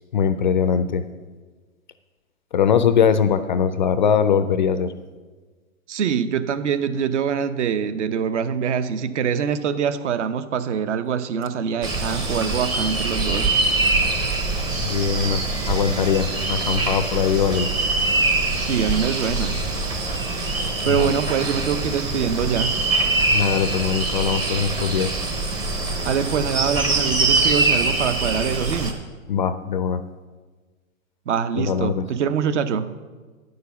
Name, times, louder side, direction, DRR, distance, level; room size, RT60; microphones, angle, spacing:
voice 1, 0.1-1.0 2.5-4.9 14.8-17.7 20.9-21.1 23.3-25.1 29.3-30.0 31.6-32.1, left 7 dB, 35° left, 11 dB, 0.4 m, -21 dB
voice 2, 5.9-13.5 18.6-19.6 20.8-22.7 26.0-29.0 31.3-33.0, right 7 dB, 55° right, 12 dB, 0.8 m, -24 dB
sound 1, 11.8-28.9, right 3 dB, 10° right, 0.6 m, -23 dB
9.6 x 6.8 x 6.9 m, 1.4 s
hypercardioid pair, 135°, 42 cm